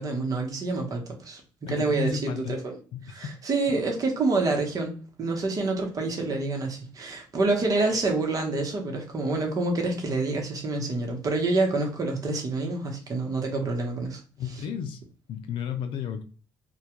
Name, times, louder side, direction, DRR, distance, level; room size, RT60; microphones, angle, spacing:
voice 1, 0.0-2.7 3.1-14.2, right 3 dB, 40° right, 0.9 m, -27 dB
voice 2, 1.7-2.6 2.9-3.3 14.4-15.0 15.3-16.2, left 7 dB, 75° left, 0.4 m, -32 dB
2.2 x 2.2 x 2.8 m
cardioid pair, 95°, 9 cm